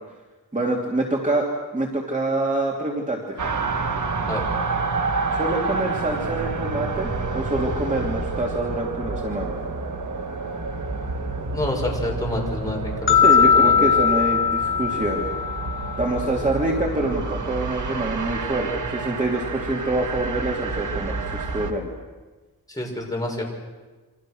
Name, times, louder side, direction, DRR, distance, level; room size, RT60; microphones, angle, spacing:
voice 1, 0.5-1.5 1.7-3.4 5.3-9.6 13.2-15.2 16.0-21.9, right 2 dB, 20° right, -1 dB, 2.8 m, -26 dB
sound 1, 3.4-21.7, right 3 dB, 50° right, 2.1 m, -29 dB
voice 2, 11.5-13.2 13.5-13.7 22.8-23.4, left 1 dB, 10° left, 0 dB, 6.4 m, -28 dB
sound 2, 13.1-16.2, left 7 dB, 30° left, 3.8 m, -19 dB
28.5 x 26.5 x 6.4 m, 1.2 s
wide cardioid pair, 150°, 38 cm